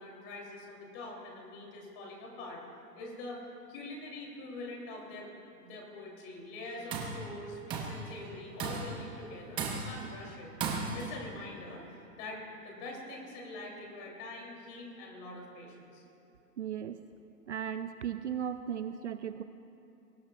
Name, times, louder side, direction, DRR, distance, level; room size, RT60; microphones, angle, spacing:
voice 1, 0.0-2.6 2.9-10.5 10.9-16.0, left 2 dB, 25° left, -1 dB, 3.3 m, -44 dB
Tools, 6.7-7.2 7.7-8.1 8.6-9.0 9.6-10.1 10.6-11.2, right 4 dB, 10° right, 0.8 m, -35 dB
voice 2, 16.6-17.0 17.5-19.4, right 9 dB, 50° right, 10 dB, 0.5 m, -36 dB
23.0 x 18.5 x 2.5 m, 2.7 s
hypercardioid pair, 145°, 47 cm